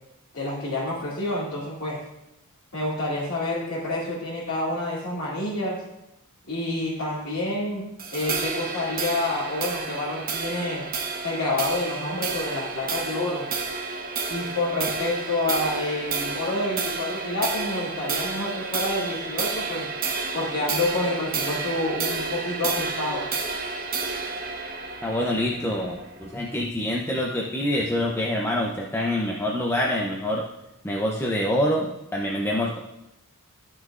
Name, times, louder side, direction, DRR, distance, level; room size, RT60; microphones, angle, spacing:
voice 1, 0.3-2.0 2.7-5.8 6.5-7.8 8.1-10.8 11.2-13.5 14.3-23.2, left 2 dB, 75° left, -10 dB, 2.3 m, -28 dB
sound 1, 8.0-26.6, right 4 dB, 40° right, 1.1 m, -31 dB
voice 2, 25.0-30.5 30.8-32.8, left 1 dB, 10° left, -2 dB, 0.6 m, -26 dB
12.5 x 6.3 x 2.5 m, 0.88 s
head